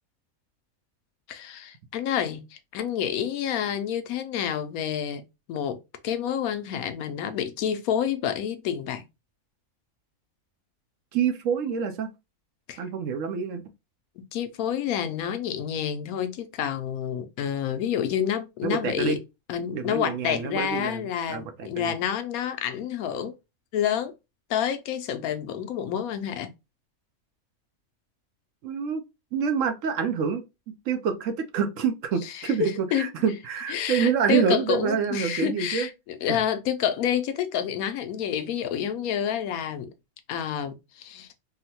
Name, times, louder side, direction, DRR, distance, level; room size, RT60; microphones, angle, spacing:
voice 1, 1.3-5.2 5.5-9.0 12.7-12.8 14.3-19.2 19.5-23.3 23.7-24.1 24.5-26.5 32.4-33.1 33.7-39.9 40.3-41.3, left 9 dB, 80° left, 1.0 m, -28 dB
voice 2, 11.1-12.1 12.8-13.6 18.6-19.2 19.7-21.9 28.6-29.0 29.3-35.9 36.3-36.4, right 6 dB, 70° right, 0.9 m, -27 dB
3.7 x 2.1 x 2.7 m
omnidirectional pair, 1.5 m